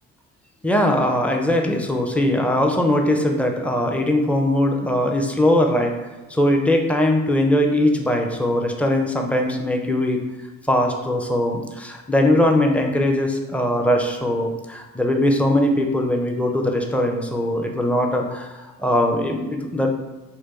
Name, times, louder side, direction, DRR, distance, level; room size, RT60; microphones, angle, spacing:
voice 1, 0.6-5.9 6.3-10.2 10.7-19.9, left 1 dB, 5° left, 2 dB, 0.4 m, -20 dB
2.9 x 2.2 x 3.9 m, 1.1 s
figure-of-eight pair, 45°, 38 cm